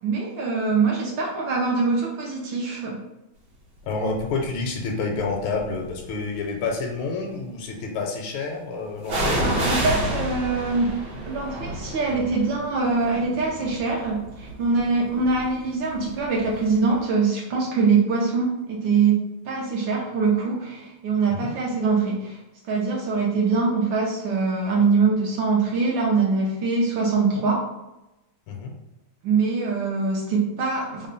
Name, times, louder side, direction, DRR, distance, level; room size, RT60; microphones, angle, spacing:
voice 1, 0.0-3.0 9.4-10.9 11.2-19.2 19.4-22.4 22.6-27.6 29.2-31.1, right 4 dB, 75° right, -2 dB, 1.3 m, -23 dB
voice 2, 3.8-9.4 21.3-21.5 28.5-28.7, left 4 dB, 75° left, 1 dB, 1.3 m, -28 dB
sound 1, 4.1-4.5 5.2-6.2 9.1-16.7 17.0-17.1, right 1 dB, 55° right, 1.6 m, -30 dB
3.6 x 2.1 x 3.9 m, 0.95 s
omnidirectional pair, 2.3 m